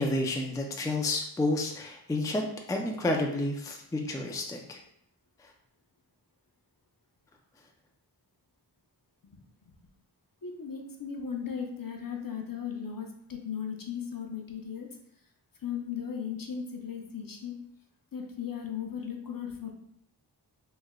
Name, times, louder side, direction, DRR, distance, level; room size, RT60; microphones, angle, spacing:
voice 1, 0.0-4.8 5.4-5.5, left 2 dB, 10° left, 1 dB, 0.4 m, -30 dB
voice 2, 10.4-14.9 15.6-17.6 18.1-19.7, left 7 dB, 50° left, 2 dB, 0.6 m, -37 dB
3.1 x 2.1 x 3.6 m, 0.72 s
wide cardioid pair, 45°, 44 cm